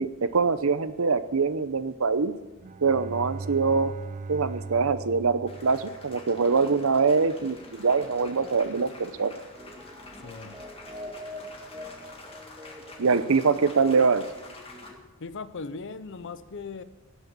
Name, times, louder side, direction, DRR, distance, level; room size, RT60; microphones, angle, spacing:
voice 1, 0.0-2.3 2.8-3.9 4.3-9.3 13.0-14.2, right 4 dB, 70° right, 13 dB, 0.7 m, -24 dB
Bowed string instrument, 2.4-6.5, right 3 dB, 35° right, 0.3 m, -39 dB
sound 1, 5.5-14.9, left 2 dB, 25° left, 1.9 m, -48 dB
sound 2, 7.2-15.0, left 1 dB, 20° right, 1.6 m, -45 dB
voice 2, 10.2-10.6 15.2-16.8, left 4 dB, 60° left, 14 dB, 0.7 m, -38 dB
17.0 x 6.2 x 7.1 m, 1.1 s
head